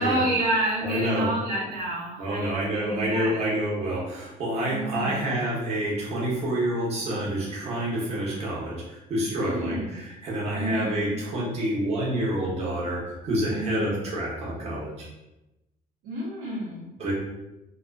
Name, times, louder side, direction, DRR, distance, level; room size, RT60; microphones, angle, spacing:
voice 1, 0.0-3.4 4.6-5.3 9.4-10.0 10.5-11.1 13.5-14.0 16.0-16.9, right 1 dB, 90° right, -6 dB, 0.8 m, -29 dB
voice 2, 0.8-1.3 2.2-15.1 17.0-17.1, right 1 dB, 40° right, -5 dB, 0.8 m, -28 dB
2.4 x 2.2 x 2.3 m, 0.96 s
cardioid pair, 125°, 16 cm